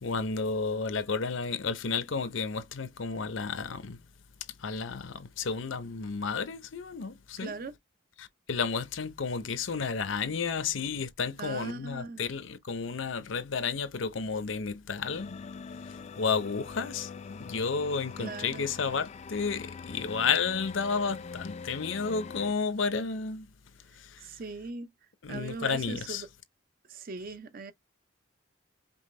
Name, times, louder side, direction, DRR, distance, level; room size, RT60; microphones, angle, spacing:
voice 1, 0.0-4.0 4.6-7.5 8.2-15.4 15.8-23.5 23.9-24.4 25.2-26.2, left 5 dB, 65° left, 0.6 m, -32 dB
voice 2, 7.4-7.8 11.4-12.3 18.2-18.6 24.2-24.9 25.3-26.3 26.9-27.7, right 3 dB, 45° right, 0.5 m, -40 dB
sound 1, 15.0-22.5, left 5 dB, 35° left, 0.3 m, -43 dB
5.4 x 2.2 x 3.1 m
head